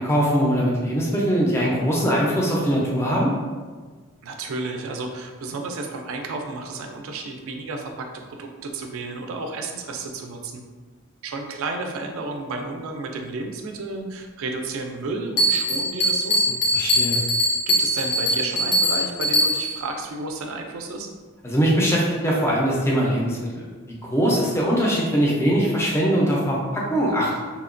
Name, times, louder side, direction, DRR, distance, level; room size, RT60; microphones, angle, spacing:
voice 1, 0.0-3.3 16.7-17.2 21.4-27.4, equal, 10° left, -3 dB, 0.4 m, -22 dB
voice 2, 4.2-10.6 11.2-16.6 17.7-21.1, right 3 dB, 70° right, 3 dB, 0.3 m, -32 dB
Bell, 15.4-19.9, equal, 85° left, 0.6 m, -22 dB
2.8 x 2.1 x 2.5 m, 1.4 s
head